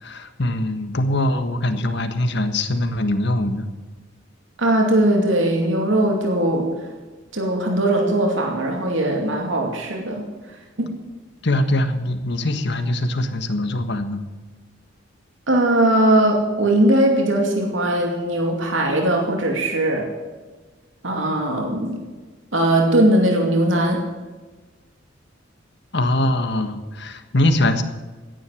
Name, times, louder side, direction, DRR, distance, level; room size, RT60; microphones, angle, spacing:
voice 1, 0.0-3.7 11.4-14.2 25.9-27.8, left 1 dB, 60° left, 8 dB, 1.5 m, -22 dB
voice 2, 4.6-6.7 7.3-10.3 10.8-10.9 15.5-20.1 21.0-22.0 22.5-24.0, right 1 dB, 80° right, 1 dB, 2.6 m, -19 dB
17.0 x 11.0 x 6.3 m, 1.3 s
head